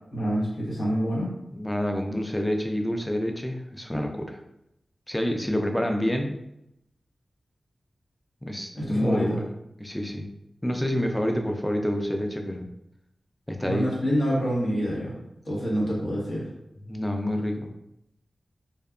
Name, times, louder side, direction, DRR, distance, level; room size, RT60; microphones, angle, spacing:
voice 1, 0.1-1.3 8.7-9.4 13.7-15.1 15.4-16.5, equal, 55° left, -5 dB, 0.9 m, -26 dB
voice 2, 1.5-4.4 5.1-6.4 8.4-9.5 9.8-10.3 10.6-12.6 13.5-13.9 16.9-17.7, equal, 10° left, 3 dB, 0.3 m, -28 dB
2.7 x 2.2 x 2.3 m, 0.82 s
wide cardioid pair, 85°, 0 cm